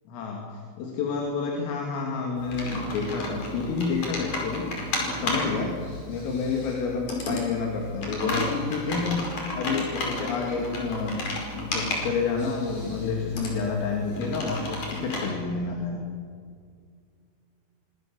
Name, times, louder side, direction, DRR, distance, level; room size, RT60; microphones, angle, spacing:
voice 1, 0.1-4.7 5.0-5.8 6.1-11.2 11.5-16.0, left 4 dB, 80° left, 0 dB, 5.3 m, -29 dB
Computer keyboard, 2.4-15.3, left 1 dB, 40° left, 6.3 m, -33 dB
27.0 x 24.5 x 7.2 m, 2.2 s
omnidirectional pair, 5.8 m